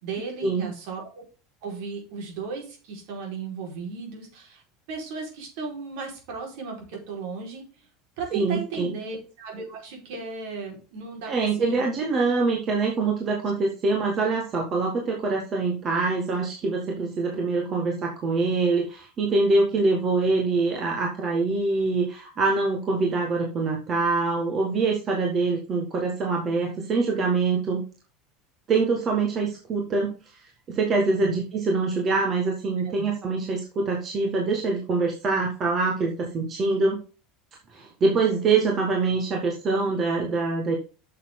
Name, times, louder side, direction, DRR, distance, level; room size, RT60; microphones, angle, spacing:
voice 1, 0.0-1.2 1.6-4.6 4.9-7.6 8.2-11.9 31.0-31.4 32.8-33.0, right 4 dB, 65° right, 1 dB, 4.7 m, -35 dB
voice 2, 8.3-9.0 11.3-27.8 28.7-30.1 30.7-37.0 37.7-40.7, right 3 dB, 25° right, 0 dB, 1.7 m, -24 dB
8.8 x 6.8 x 3.8 m, 0.35 s
cardioid pair, 165°, 0 cm